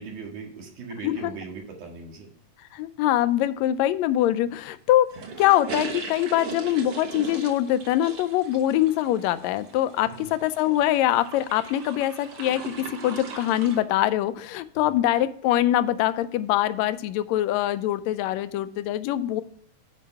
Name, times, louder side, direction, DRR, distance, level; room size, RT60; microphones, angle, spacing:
voice 1, 0.0-2.3 10.2-10.3 14.8-15.0, right 5 dB, 90° right, 0 dB, 3.4 m, -39 dB
voice 2, 2.7-5.1 5.4-19.4, left 13 dB, 80° left, 13 dB, 1.7 m, -23 dB
sound 1, 5.1-13.8, right 5 dB, 55° right, 1.8 m, -39 dB
9.5 x 4.9 x 5.7 m, 0.65 s
omnidirectional pair, 3.4 m